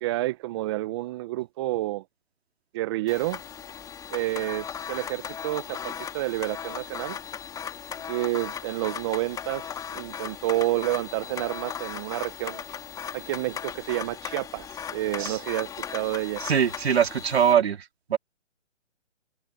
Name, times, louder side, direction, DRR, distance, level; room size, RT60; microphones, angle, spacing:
voice 1, 0.0-2.0 2.7-3.4 4.1-7.2 8.1-12.6 13.1-16.4, right 17 dB, 20° right, 1.0 m, -29 dB
sound 1, 3.1-17.5, left 8 dB, 10° left, 3.2 m, -37 dB
voice 2, 16.5-17.8 18.1-18.2, right 8 dB, 60° right, 3.0 m, -21 dB
hypercardioid pair, 150°, 35 cm